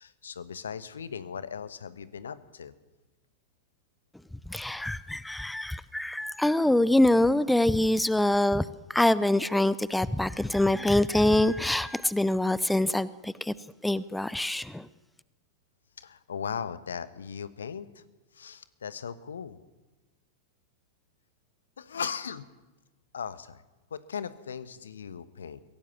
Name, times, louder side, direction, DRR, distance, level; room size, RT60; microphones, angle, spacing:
voice 1, 0.0-2.7 16.0-18.0 18.3-19.6 21.8-22.4 23.1-23.6 23.9-25.6, left 7 dB, 70° left, 15 dB, 1.2 m, -38 dB
voice 2, 4.5-8.6 8.9-13.5 13.8-14.9, left 1 dB, 5° left, 18 dB, 0.6 m, -25 dB
23.0 x 17.0 x 7.3 m, 1.1 s
figure-of-eight pair, 90°, 0 cm